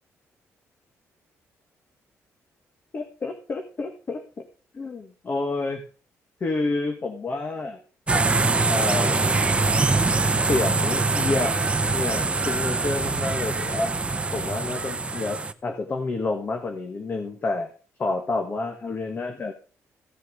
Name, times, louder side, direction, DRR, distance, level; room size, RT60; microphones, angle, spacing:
voice 1, 2.9-4.5 4.7-5.8 6.4-7.8 8.7-9.4 10.4-11.6 11.9-13.9 14.3-17.7 18.0-19.5, left 3 dB, 40° left, 4 dB, 1.9 m, -29 dB
sound 1, 8.1-15.5, right 3 dB, 20° right, 0.8 m, -23 dB
15.5 x 6.5 x 5.4 m, 0.37 s
cardioid pair, 100°, 5 cm